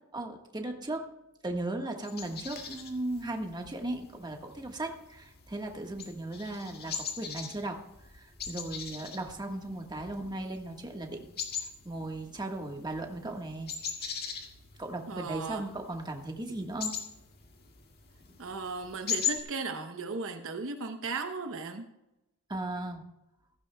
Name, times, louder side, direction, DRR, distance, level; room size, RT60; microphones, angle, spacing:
voice 1, 0.1-1.0 1.4-7.8 8.1-11.3 11.6-14.0 14.8-17.0 22.5-23.0, right 2 dB, 20° right, 2 dB, 1.4 m, -37 dB
sound 1, 2.0-19.4, left 7 dB, 45° left, 1.8 m, -40 dB
voice 2, 15.1-15.6 18.4-21.9, right 4 dB, 65° right, 6 dB, 0.9 m, -36 dB
15.5 x 15.0 x 2.3 m, 0.91 s
head